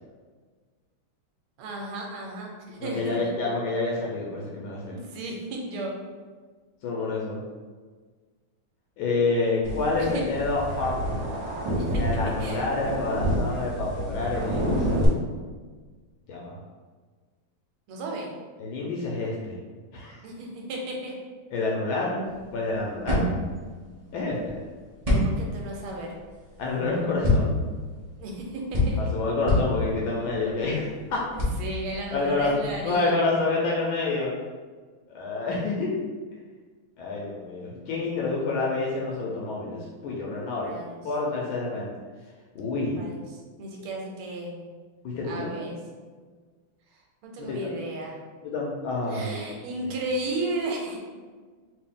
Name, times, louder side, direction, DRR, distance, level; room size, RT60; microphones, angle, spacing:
voice 1, 1.6-3.3 4.9-5.9 10.1-10.2 11.8-12.0 12.4-12.6 17.9-18.3 20.2-21.2 25.1-26.1 28.2-29.0 31.3-33.3 40.6-41.0 43.0-44.6 45.2-45.8 47.2-48.2 49.1-51.0, right 2 dB, 90° right, 0 dB, 1.6 m, -34 dB
voice 2, 2.8-4.9 6.8-7.4 9.0-11.3 12.0-15.0 16.3-16.6 18.6-19.6 19.9-20.2 21.5-23.3 24.1-24.6 26.6-27.6 29.0-31.2 32.1-34.3 35.1-35.9 37.0-40.7 41.0-41.9 42.5-43.0 45.0-45.7 47.4-47.7 48.4-49.5, left 3 dB, 75° left, -3 dB, 1.3 m, -28 dB
sound 1, 9.6-15.1, equal, 35° right, 1.3 m, -29 dB
sound 2, 22.2-33.0, left 2 dB, 70° right, 0.3 m, -28 dB
3.4 x 2.7 x 3.6 m, 1.5 s
omnidirectional pair, 2.4 m